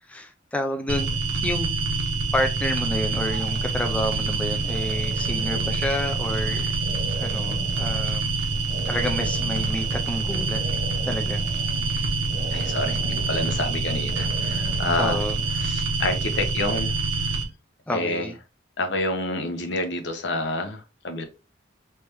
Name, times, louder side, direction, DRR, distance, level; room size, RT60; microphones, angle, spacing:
voice 1, 0.0-1.7 2.3-6.7 7.2-8.3 8.9-10.7 11.1-12.1 15.0-15.4 17.9-18.4, left 1 dB, 5° left, 0.3 m, -30 dB
sound 1, 0.9-17.4, right 3 dB, 80° right, 0.9 m, -26 dB
sound 2, 3.3-15.7, right 1 dB, 50° right, 0.9 m, -40 dB
voice 2, 12.5-15.2 15.5-17.4 17.9-18.3 18.8-21.2, left 2 dB, 70° left, 0.8 m, -28 dB
3.3 x 3.3 x 2.9 m
head